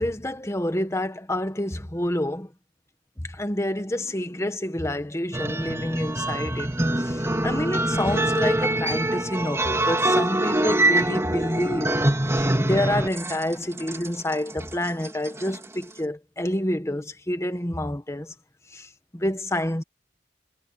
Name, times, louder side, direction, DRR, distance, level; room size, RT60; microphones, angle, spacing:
voice 1, 0.0-2.5 3.2-12.0 12.3-18.3 18.7-19.8, left 1 dB, 15° left, 1.5 m, -28 dB
sound 1, 5.3-15.6, right 1 dB, 15° right, 3.3 m, -24 dB
head